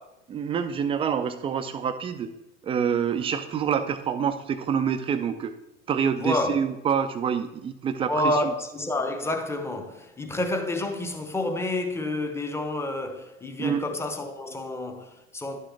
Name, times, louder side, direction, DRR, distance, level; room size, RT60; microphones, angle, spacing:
voice 1, 0.3-2.3 2.6-5.5 5.9-8.3 13.6-13.8, right 7 dB, 15° right, 0.4 m, -26 dB
voice 2, 6.2-6.6 8.1-15.6, left 1 dB, 5° left, 0.7 m, -29 dB
11.0 x 6.4 x 3.3 m
figure-of-eight pair, 85°, 42 cm